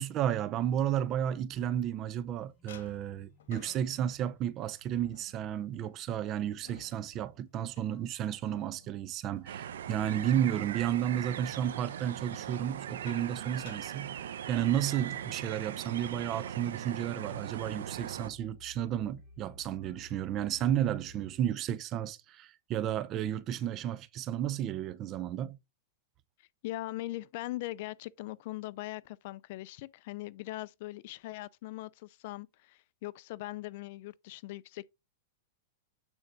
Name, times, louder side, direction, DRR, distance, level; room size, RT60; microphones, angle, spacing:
voice 1, 0.0-14.2 14.5-25.6, right 10 dB, 30° right, 0.5 m, -32 dB
sound 1, 0.8-2.2 2.7-10.5 10.8-11.2 12.3-14.9 15.2-15.4 15.8-16.0 16.5-17.2, left 7 dB, 85° left, 1.5 m, -57 dB
sound 2, 2.4-9.0 9.3-21.4, left 3 dB, 10° left, 2.8 m, -60 dB
sound 3, 9.5-18.3, right 9 dB, 90° right, 0.7 m, -40 dB
voice 2, 26.6-34.8, left 17 dB, 50° left, 0.4 m, -40 dB
8.9 x 4.5 x 3.9 m
supercardioid pair, 160°, 0 cm